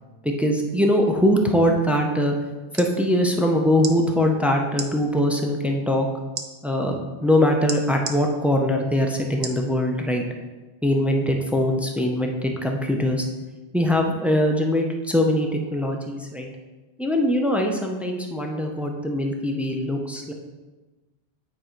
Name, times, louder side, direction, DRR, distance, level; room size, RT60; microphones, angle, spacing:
voice 1, 0.2-2.4 2.7-6.1 6.6-10.2 10.8-13.3 13.7-16.5 17.0-20.3, left 1 dB, ahead, 2 dB, 0.5 m, -22 dB
sound 1, 2.5-2.9 3.8-4.0 4.7-4.9 6.3-6.5 7.7-8.2 9.4-9.6 10.2-10.3, right 6 dB, 80° right, 1.0 m, -32 dB
9.1 x 4.2 x 4.5 m, 1.2 s
omnidirectional pair, 1.1 m